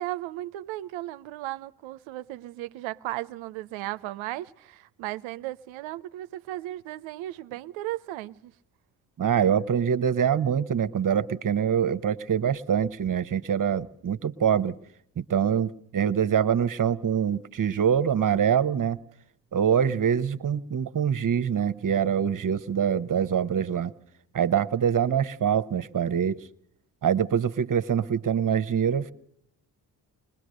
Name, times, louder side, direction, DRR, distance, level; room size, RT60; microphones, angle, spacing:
voice 1, 0.0-8.5, right 15 dB, 70° right, 0.7 m, -35 dB
voice 2, 9.2-14.7 15.2-19.0 19.5-23.9 24.3-26.4 27.0-29.1, right 8 dB, 40° right, 1.1 m, -24 dB
21.5 x 21.5 x 6.5 m
hypercardioid pair, 40°, 48 cm